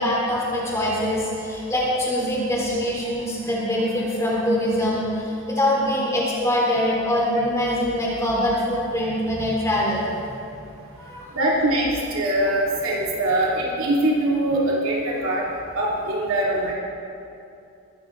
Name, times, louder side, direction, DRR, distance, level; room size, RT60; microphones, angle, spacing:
voice 1, 0.0-10.2 11.0-11.3, left 1 dB, 15° left, -5 dB, 3.6 m, -23 dB
voice 2, 11.3-15.4 15.7-16.7, right 1 dB, 75° right, -4 dB, 2.9 m, -22 dB
21.0 x 14.0 x 4.0 m, 2.6 s
head